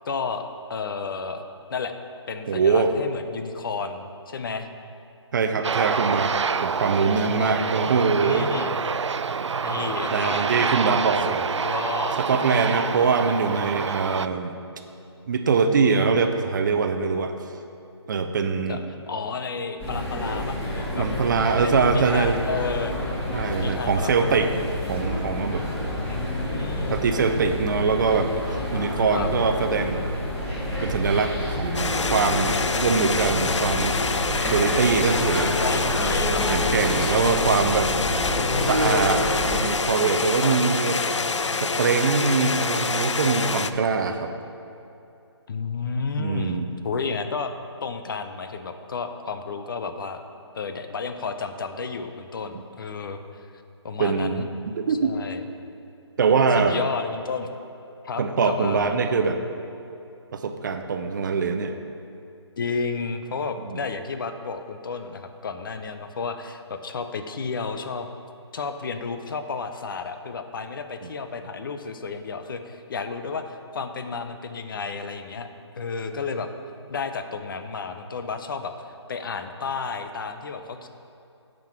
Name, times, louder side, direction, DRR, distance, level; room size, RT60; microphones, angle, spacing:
voice 1, 0.1-1.4 1.7-1.9 2.3-4.7 7.2-8.7 9.6-10.5 11.3-11.4 11.6-12.2 18.7-18.8 19.1-21.1 21.6-23.0 23.6-25.0 26.0-27.0 29.1-29.3 35.4-37.1 38.0-38.9 40.4-40.6 45.5-47.5 47.8-50.2 50.5-53.5 53.8-54.5 54.9-55.4 56.5-57.5 58.0-59.0 62.6-68.1 68.5-75.5 75.8-76.5 76.9-78.7 79.1-80.9, left 5 dB, 50° left, 8 dB, 0.7 m, -32 dB
voice 2, 2.5-2.9 5.3-8.5 10.1-11.4 12.2-14.5 15.3-17.3 18.1-18.8 21.0-22.4 23.3-24.5 24.9-25.7 26.9-28.3 28.7-30.0 30.8-33.9 34.5-35.5 36.5-37.9 38.6-39.2 39.6-41.0 41.6-44.3 46.2-46.6 54.0-55.1 56.2-56.8 58.2-59.4 60.3-61.7 63.7-63.8, right 5 dB, 45° right, 7 dB, 0.6 m, -23 dB
Aircraft, 5.6-14.3, right 5 dB, 80° right, 0.4 m, -27 dB
sound 1, 19.8-39.6, equal, 15° left, 2.0 m, -28 dB
sound 2, 31.7-43.7, left 4 dB, 85° left, 0.5 m, -26 dB
9.1 x 5.3 x 5.9 m, 2.7 s
figure-of-eight pair, 145°, 15 cm